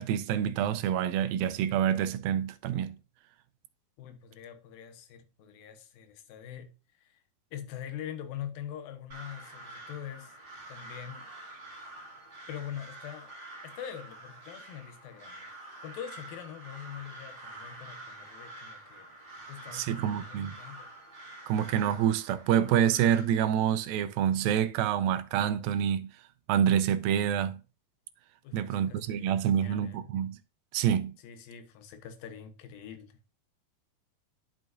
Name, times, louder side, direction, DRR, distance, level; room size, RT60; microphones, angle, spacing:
voice 1, 0.0-3.0 19.7-20.6 21.5-26.1 26.5-27.6 28.5-30.4 30.7-31.2, right 9 dB, 85° right, 2.4 m, -27 dB
voice 2, 4.0-7.2 7.5-10.4 10.7-11.3 12.5-13.3 13.6-19.1 19.5-20.9 28.4-30.1 31.2-33.3, left 9 dB, 80° left, 2.8 m, -44 dB
Crow, 9.1-23.3, right 2 dB, 20° right, 3.2 m, -47 dB
11.0 x 5.8 x 2.6 m
omnidirectional pair, 4.1 m